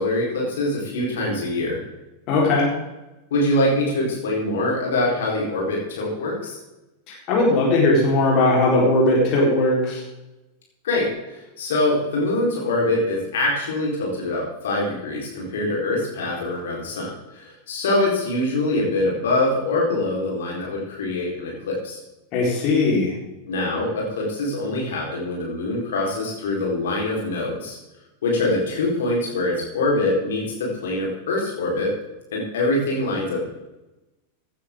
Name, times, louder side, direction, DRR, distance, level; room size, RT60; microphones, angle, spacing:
voice 1, 0.0-1.8 3.3-6.6 10.8-22.0 23.5-27.8 28.2-31.9 32.3-33.5, left 2 dB, 60° left, -3 dB, 4.3 m, -24 dB
voice 2, 2.3-2.7 7.1-10.0 22.3-23.1, left 2 dB, 40° left, -3 dB, 4.2 m, -19 dB
16.0 x 10.5 x 3.8 m, 1.0 s
figure-of-eight pair, 90°, 0 cm